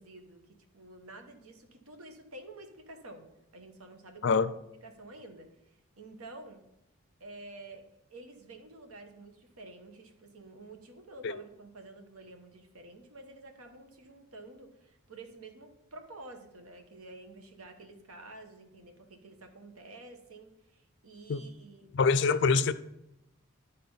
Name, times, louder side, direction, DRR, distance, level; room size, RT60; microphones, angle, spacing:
voice 1, 0.0-4.4 4.8-6.6 7.2-21.9, right 2 dB, 85° right, 1.2 m, -50 dB
voice 2, 21.9-22.7, left 5 dB, 55° left, 0.4 m, -24 dB
11.0 x 4.2 x 5.5 m
head